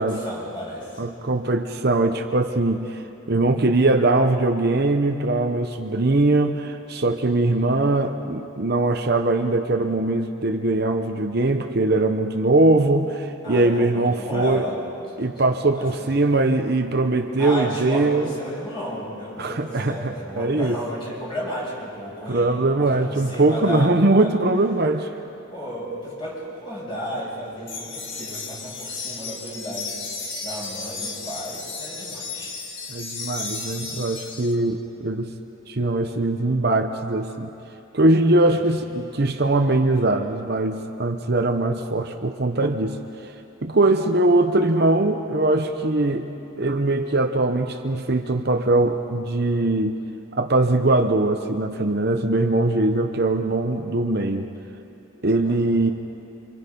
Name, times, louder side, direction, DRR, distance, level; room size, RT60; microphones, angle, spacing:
voice 1, 0.0-1.0 13.4-14.8 15.2-15.3 15.7-16.1 17.4-24.3 25.5-32.6 38.5-38.6 43.8-44.1 55.4-55.7, equal, 25° left, -5 dB, 7.0 m, -33 dB
voice 2, 1.0-14.7 15.2-18.3 19.4-20.7 22.3-25.1 32.9-35.3 35.7-37.5 37.9-43.3 43.6-46.3 46.6-50.0 50.4-54.5 55.2-55.9, right 2 dB, 50° right, 5 dB, 0.9 m, -21 dB
sound 1, 27.7-34.5, left 4 dB, 60° left, 2.2 m, -34 dB
28.5 x 26.0 x 5.4 m, 2.8 s
head